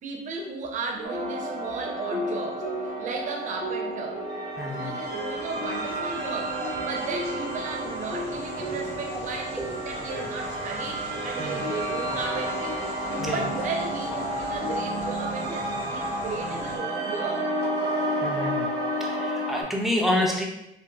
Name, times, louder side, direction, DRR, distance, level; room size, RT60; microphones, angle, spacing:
voice 1, 0.0-4.2 4.7-12.8 13.3-17.5, right 4 dB, 50° right, 1 dB, 0.7 m, -35 dB
sound 1, 0.9-15.6, left 1 dB, 50° left, 1.0 m, -38 dB
sound 2, 1.0-19.6, right 1 dB, 80° right, 0.9 m, -31 dB
voice 2, 4.6-5.0 9.6-9.7 11.4-11.6 13.2-13.4 18.2-18.7 19.0-20.4, left 1 dB, ahead, -1 dB, 0.5 m, -28 dB
sound 3, 5.0-16.8, equal, 85° left, 1.3 m, -42 dB
3.8 x 2.4 x 2.3 m, 0.87 s
cardioid pair, 110°, 17 cm